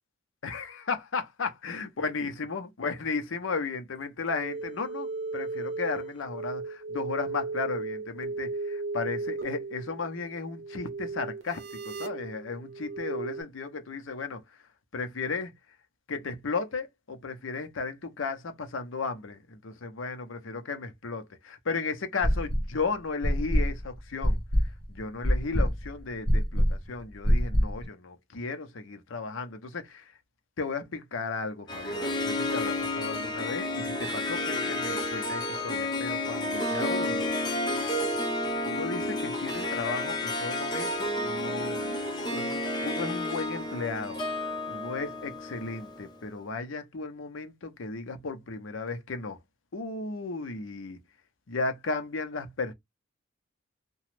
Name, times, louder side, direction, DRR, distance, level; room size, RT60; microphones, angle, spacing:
voice 1, 0.4-5.1 5.3-11.6 11.9-14.4 14.9-15.5 16.1-24.4 24.9-30.1 30.6-37.3 38.7-41.8 42.3-44.2 44.7-49.4 49.7-51.0 51.5-52.7, left 4 dB, 75° left, 0.7 m, -35 dB
sound 1, 4.2-13.4, right 3 dB, 65° right, 0.8 m, -36 dB
sound 2, 22.2-22.8 23.2-27.8, equal, 20° right, 0.8 m, -25 dB
Harp, 31.7-46.2, left 1 dB, 20° left, 0.7 m, -31 dB
2.9 x 2.2 x 3.1 m
head